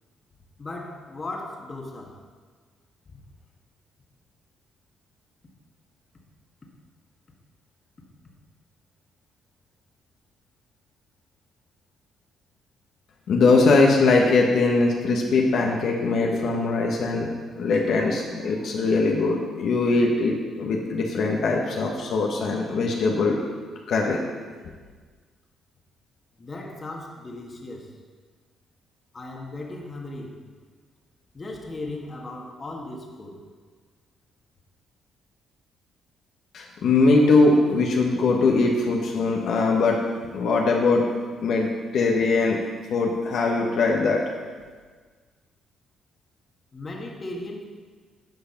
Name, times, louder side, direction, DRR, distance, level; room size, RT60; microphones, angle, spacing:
voice 1, 0.6-2.2 3.1-3.2 26.4-28.0 29.1-30.4 31.3-33.4 46.7-47.6, left 2 dB, 30° left, 0 dB, 1.7 m, -37 dB
voice 2, 13.3-17.3 17.6-23.4 23.9-24.2 36.5-40.0 40.3-41.0 41.4-42.6 42.9-44.2, left 3 dB, 70° left, 0 dB, 1.3 m, -21 dB
11.0 x 5.7 x 5.8 m, 1.5 s
cardioid pair, 90°, 0 cm